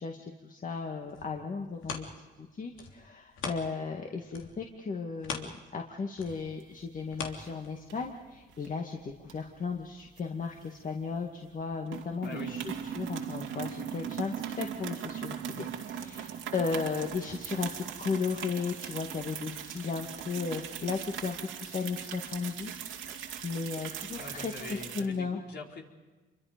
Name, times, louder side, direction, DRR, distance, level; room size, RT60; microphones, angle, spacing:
voice 1, 0.0-2.1 2.4-25.4, left 5 dB, 40° left, 2 dB, 2.2 m, -35 dB
sound 1, 0.8-4.0 4.3-8.1 8.6-8.7, left 5 dB, 80° left, 3.3 m, -42 dB
sound 2, 6.3-7.0 7.3-7.5 7.9-8.7 9.2-11.2 11.4-11.6 11.9-25.0, right 8 dB, 80° right, 2.4 m, -39 dB
voice 2, 12.2-12.6 24.1-25.8, left 3 dB, 55° left, 1 dB, 4.4 m, -43 dB
28.0 x 23.5 x 5.2 m, 1.2 s
cardioid pair, 90°, 20 cm